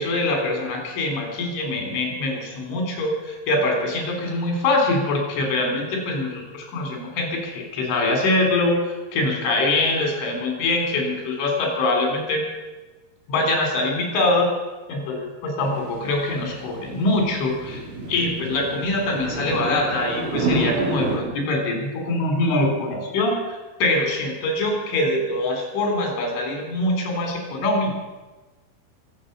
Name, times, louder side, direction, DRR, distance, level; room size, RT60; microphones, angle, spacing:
voice 1, 0.0-12.4 13.3-14.5 14.9-17.8 18.1-27.9, left 2 dB, 85° left, 2 dB, 6.3 m, -23 dB
sound 1, 15.6-21.2, right 2 dB, 85° right, 5.6 m, -29 dB
23.5 x 8.6 x 6.9 m, 1.2 s
omnidirectional pair, 5.4 m